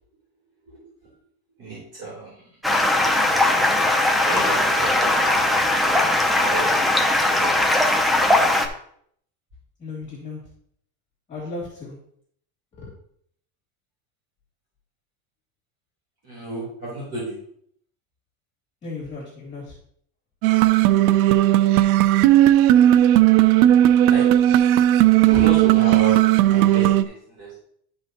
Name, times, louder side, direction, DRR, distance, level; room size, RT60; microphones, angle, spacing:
voice 1, 1.6-2.5 4.2-6.1 6.3-7.7 8.0-8.3 16.2-17.4 24.1-24.6 25.2-27.6, right 2 dB, 35° right, -6 dB, 3.8 m, -32 dB
Stream, 2.6-8.7, left 1 dB, ahead, 0.6 m, -19 dB
voice 2, 9.8-10.4 11.3-11.9 12.8-12.9 18.8-19.6, left 3 dB, 15° left, -5 dB, 2.7 m, -35 dB
sound 1, 20.4-27.0, right 13 dB, 85° right, 0.6 m, -16 dB
12.0 x 5.4 x 2.9 m, 0.66 s
cardioid pair, 160°, 41 cm